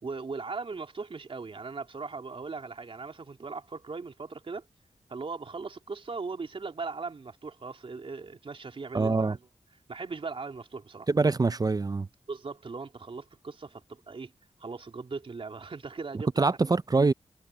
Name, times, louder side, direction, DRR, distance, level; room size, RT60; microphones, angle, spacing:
voice 1, 0.0-4.7 5.1-9.4 9.9-11.1 12.3-14.3 14.6-16.6, right 4 dB, 55° right, 3.3 m, -39 dB
voice 2, 8.9-9.4 11.1-12.1 16.4-17.1, right 3 dB, 35° right, 0.7 m, -24 dB
cardioid pair, 45°, 11 cm